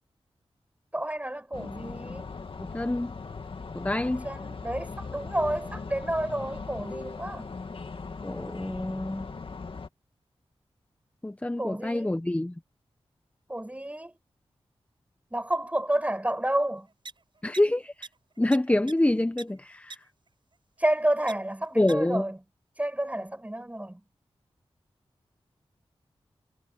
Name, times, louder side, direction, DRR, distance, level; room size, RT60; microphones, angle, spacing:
voice 1, 0.9-2.3 4.2-7.5 11.6-12.2 13.5-14.1 15.3-16.9 20.8-22.4 22.8-24.0, right 1 dB, 15° right, 7.8 m, -30 dB
sound 1, 1.5-9.9, left 4 dB, 60° left, 2.0 m, -39 dB
voice 2, 2.7-3.1 3.7-4.2 8.2-9.3 11.2-12.5 17.4-18.1 18.4-20.0 21.8-22.2, left 1 dB, 15° left, 0.8 m, -26 dB
sound 2, 17.1-17.2 17.5-17.6 18.0-18.1 18.5-18.6 18.9-19.0 19.4-19.5 19.9-20.0 21.3-21.4 21.9-22.0, right 3 dB, 50° right, 5.4 m, -39 dB
wide cardioid pair, 70°, 10 cm